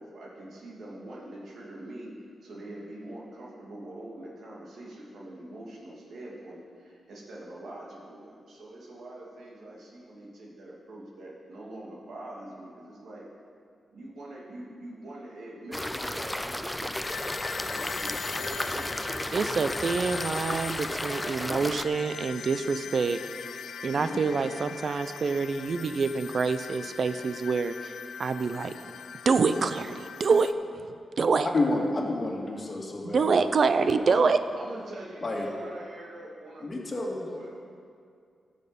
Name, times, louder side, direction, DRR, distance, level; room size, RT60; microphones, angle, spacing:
voice 1, 0.0-2.1 2.4-13.3 13.9-17.0 17.5-19.6 21.2-21.6 34.6-36.7 37.3-37.5, right 1 dB, 75° right, -4 dB, 2.5 m, -44 dB
sound 1, 15.7-21.9, left 1 dB, 10° left, 0.5 m, -33 dB
sound 2, 17.0-30.5, left 7 dB, 85° left, 0.4 m, -40 dB
voice 2, 19.3-23.2 23.8-28.7 29.3-30.5 31.2-31.5 33.0-34.4, right 4 dB, 60° right, 11 dB, 0.6 m, -26 dB
voice 3, 31.5-33.4 34.1-34.3 35.2-35.5 36.6-37.3, left 2 dB, 35° left, -3 dB, 2.0 m, -30 dB
14.5 x 6.4 x 5.3 m, 2.3 s
cardioid pair, 80°, 0 cm